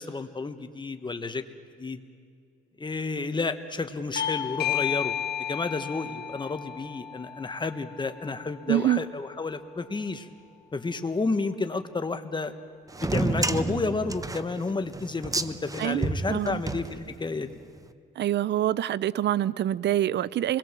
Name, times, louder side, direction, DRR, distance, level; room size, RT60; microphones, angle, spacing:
voice 1, 0.0-1.4 1.8-2.0 2.8-10.3 10.7-12.5 13.0-17.6, left 3 dB, 25° left, 1.5 m, -31 dB
Bell / Doorbell, 4.2-9.3, left 10 dB, 55° left, 1.3 m, -33 dB
voice 2, 8.7-9.0 15.8-16.6 18.2-20.6, right 12 dB, 60° right, 0.6 m, -26 dB
sound 1, 12.9-17.5, right 3 dB, 15° right, 1.0 m, -31 dB
28.0 x 21.0 x 7.6 m
cardioid pair, 90°, 20 cm